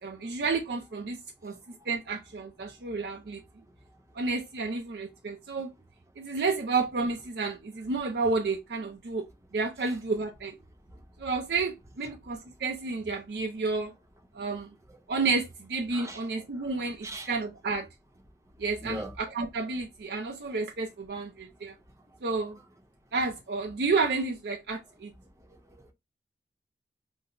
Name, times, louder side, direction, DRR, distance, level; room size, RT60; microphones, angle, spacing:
voice 1, 0.0-1.5 1.9-3.4 4.2-5.7 6.2-9.2 9.5-10.6 11.2-13.9 14.4-14.7 15.1-17.9 18.6-21.7 22.2-22.6 23.1-25.1, right 4 dB, 65° right, 0.5 m, -31 dB
voice 2, 15.9-16.2 17.0-17.3 18.8-19.1 25.5-25.9, right 1 dB, 15° right, 0.7 m, -40 dB
5.6 x 2.0 x 2.5 m
head